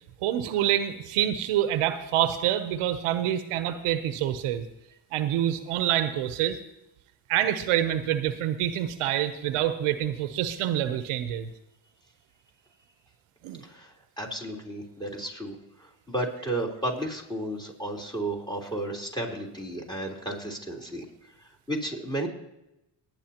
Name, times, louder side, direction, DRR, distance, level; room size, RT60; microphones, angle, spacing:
voice 1, 0.2-4.6 5.1-6.6 7.3-11.5 13.4-13.6, right 11 dB, 85° right, 10 dB, 0.8 m, -26 dB
voice 2, 13.6-15.6 16.1-21.0 21.7-22.3, right 1 dB, 10° left, 1 dB, 3.6 m, -33 dB
20.0 x 9.6 x 2.9 m, 0.91 s
supercardioid pair, 60°, 49 cm